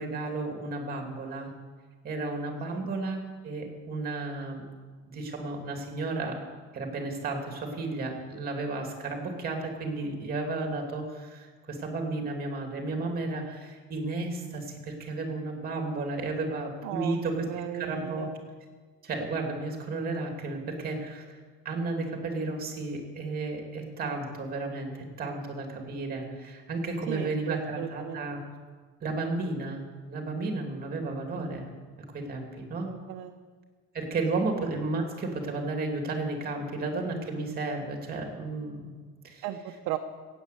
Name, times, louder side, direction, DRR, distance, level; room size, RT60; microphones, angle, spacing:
voice 1, 0.0-1.5 2.0-3.2 3.4-4.7 5.1-6.4 6.7-17.5 17.7-18.3 19.0-21.3 21.6-28.4 29.0-31.6 32.1-32.9 33.9-38.9 39.2-39.4, right 3 dB, 30° right, 3 dB, 2.7 m, -33 dB
voice 2, 16.8-18.3 27.1-28.3 32.8-33.4 39.4-40.0, right 12 dB, 80° right, 2 dB, 1.0 m, -36 dB
16.0 x 8.9 x 8.3 m, 1.5 s
cardioid pair, 165°, 30 cm